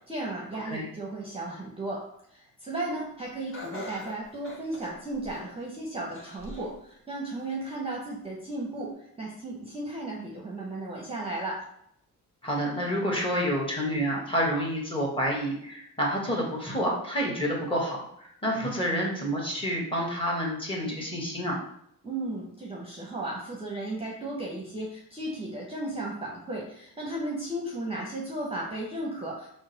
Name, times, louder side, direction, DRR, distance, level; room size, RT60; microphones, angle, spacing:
voice 1, 0.1-2.0 2.3-11.6 22.0-29.5, right 2 dB, 15° right, -3 dB, 0.7 m, -35 dB
Laughter, 3.5-5.6 6.1-6.7 7.2-7.3 8.3-8.4, left 2 dB, 35° left, 1.1 m, -42 dB
voice 2, 12.4-21.6, equal, 15° left, -2 dB, 1.2 m, -29 dB
3.8 x 2.1 x 3.9 m, 0.71 s
cardioid pair, 80°, 37 cm